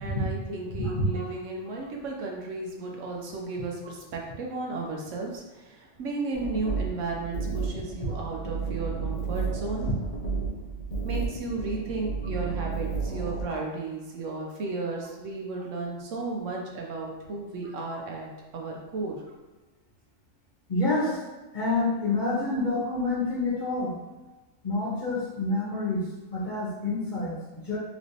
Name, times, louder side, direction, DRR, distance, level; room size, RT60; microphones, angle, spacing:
voice 1, 0.0-9.9 11.0-19.2, right 3 dB, 75° right, 0 dB, 1.0 m, -34 dB
voice 2, 0.8-1.2 14.2-14.3 20.7-21.2 21.5-23.9 24.6-27.8, left 2 dB, 40° left, -7 dB, 1.1 m, -28 dB
sound 1, 6.3-13.4, right 5 dB, 75° left, 0.3 m, -32 dB
3.2 x 3.0 x 2.7 m, 1.2 s
omnidirectional pair, 1.3 m